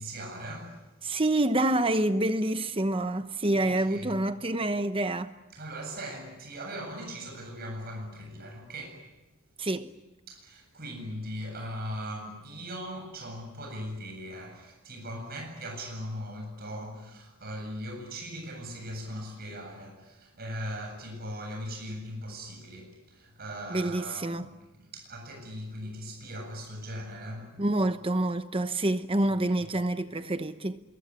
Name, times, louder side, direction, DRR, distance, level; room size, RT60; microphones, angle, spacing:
voice 1, 0.0-0.9 3.5-4.2 5.5-9.1 10.3-24.5 24.8-27.7 29.6-29.7, equal, 45° right, 7.9 m, -39 dB
voice 2, 1.0-5.3 9.6-9.9 23.7-24.5 27.6-30.8, right 1 dB, 25° right, 0.9 m, -27 dB
26.0 x 22.5 x 9.8 m
head